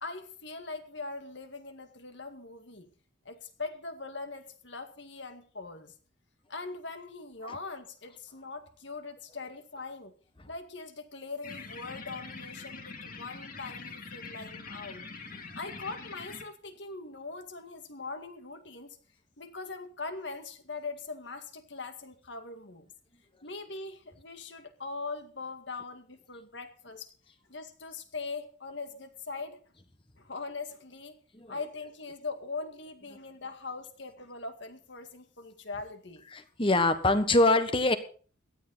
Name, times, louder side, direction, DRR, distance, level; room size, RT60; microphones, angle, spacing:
voice 1, 0.0-2.9 3.3-5.9 6.5-10.1 10.5-15.0 15.6-19.0 19.4-22.9 23.4-27.1 27.5-29.6 30.2-31.2 31.5-36.2, left 3 dB, 60° left, 7 dB, 2.1 m, -41 dB
sound 1, 11.4-16.4, left 4 dB, 45° left, 2.5 m, -44 dB
voice 2, 31.3-31.7 36.3-38.0, left 2 dB, 25° left, 10 dB, 1.4 m, -25 dB
17.0 x 13.0 x 4.1 m, 0.41 s
head